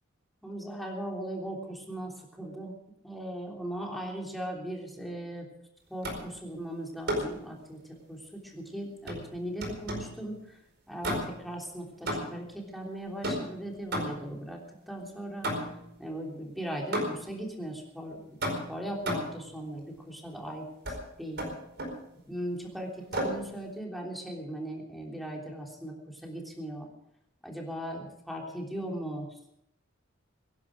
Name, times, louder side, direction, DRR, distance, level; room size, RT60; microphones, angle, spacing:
voice 1, 0.4-2.7 3.0-5.5 5.9-7.8 8.1-10.6 10.9-14.6 14.9-15.5 16.0-18.4 18.7-21.4 22.3-26.9 27.4-29.5, right 1 dB, ahead, -1 dB, 3.3 m, -38 dB
sound 1, 6.0-6.4 7.1-7.4 9.1-10.2 11.0-11.5 12.1-12.5 13.2-14.4 15.4-15.9 16.9-17.4 18.4-19.4 20.8-21.0 21.4-22.0 23.1-23.5, equal, 55° right, 4.7 m, -33 dB
23.5 x 11.0 x 5.0 m, 0.78 s
head